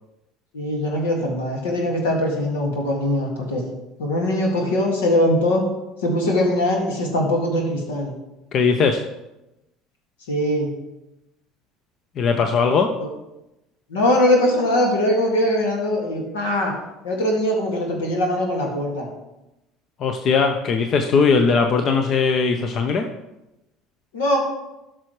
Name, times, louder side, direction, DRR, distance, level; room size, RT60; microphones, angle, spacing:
voice 1, 0.5-3.6 4.0-5.6 6.0-8.1 10.3-10.7 13.9-16.7 17.0-19.1 24.1-24.4, left 1 dB, 85° left, 0 dB, 2.1 m, -21 dB
voice 2, 8.5-9.0 12.2-12.9 20.0-23.0, left 5 dB, 50° left, 6 dB, 0.7 m, -19 dB
12.5 x 6.1 x 3.2 m, 0.95 s
hypercardioid pair, 75°, 0 cm